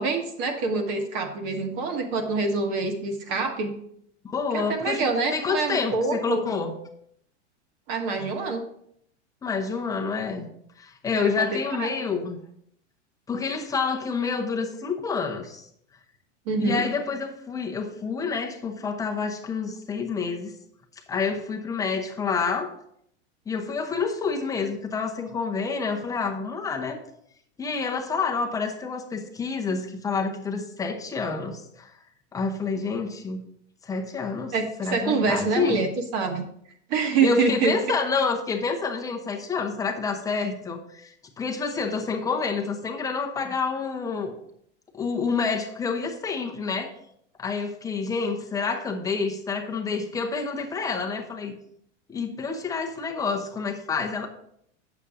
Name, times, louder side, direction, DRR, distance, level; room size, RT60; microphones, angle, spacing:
voice 1, 0.0-3.7 4.5-6.4 7.9-8.6 11.1-11.3 11.8-11.9 16.5-16.8 34.5-36.4 36.9-37.7, right 4 dB, 40° right, 5 dB, 1.4 m, -26 dB
voice 2, 4.2-6.7 9.4-10.5 10.8-12.4 13.3-15.7 16.6-20.5 21.1-22.7 23.5-27.0 27.6-31.9 32.3-33.4 33.8-34.5 34.8-35.8 37.2-44.4 44.9-46.9 47.4-51.5 52.1-54.3, left 5 dB, 10° left, 2 dB, 0.7 m, -28 dB
8.3 x 6.9 x 3.7 m, 0.70 s
supercardioid pair, 155°, 36 cm